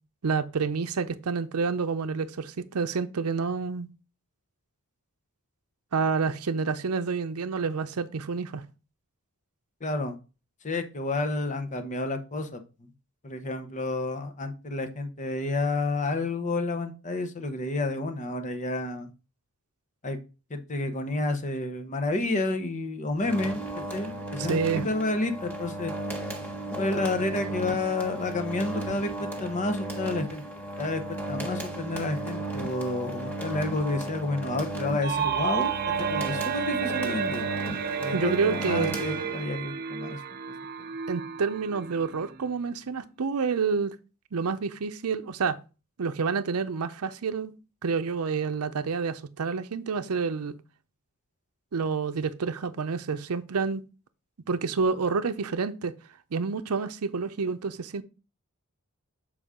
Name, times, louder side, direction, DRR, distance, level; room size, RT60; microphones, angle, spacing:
voice 1, 0.2-3.9 5.9-8.6 24.4-24.9 38.1-39.0 41.1-43.9 44.3-45.6 46.0-47.5 47.8-50.6 51.7-53.8 54.5-55.9 56.3-58.0, right 5 dB, 85° right, 0.6 m, -28 dB
voice 2, 9.8-10.2 10.6-12.6 13.2-19.1 20.0-20.2 20.5-23.6 23.9-25.9 26.8-29.1 29.4-30.4 30.8-31.0 31.3-35.7 36.1-37.5 38.0-40.2, left 2 dB, 35° left, 0.8 m, -30 dB
sound 1, 23.2-39.6, right 1 dB, 10° left, 1.4 m, -35 dB
sound 2, 35.0-42.6, right 8 dB, 45° right, 0.6 m, -32 dB
6.9 x 4.8 x 3.6 m
head